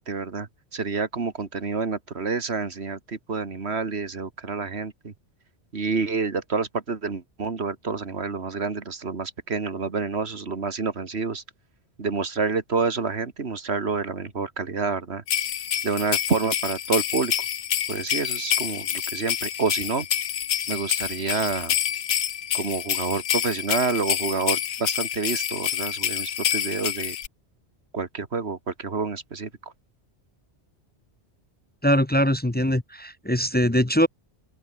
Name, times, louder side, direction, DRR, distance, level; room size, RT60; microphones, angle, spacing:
voice 1, 0.0-5.1 5.7-11.4 12.0-15.2 15.8-17.3 17.9-20.1 20.7-21.8 22.5-27.2 27.9-29.7, right 4 dB, 65° right, 2.2 m, -28 dB
sound 1, 15.3-27.3, left 10 dB, 80° left, 1.2 m, -27 dB
voice 2, 31.8-34.1, equal, 10° left, 0.6 m, -22 dB
open air
omnidirectional pair, 1.2 m